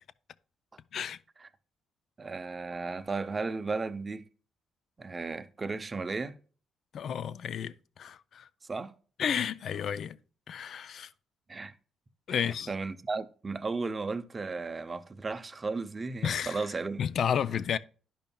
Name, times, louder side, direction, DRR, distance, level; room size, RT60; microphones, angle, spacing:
voice 1, 2.2-4.2 5.0-6.4 8.7-8.9 11.5-11.7 12.3-17.0, right 3 dB, 30° right, 0.6 m, -35 dB
voice 2, 6.9-8.5 9.2-10.2 10.5-11.1 12.3-12.7 16.2-16.6 17.0-17.8, left 8 dB, 60° left, 0.3 m, -32 dB
12.0 x 5.3 x 2.2 m
cardioid pair, 90°, 0 cm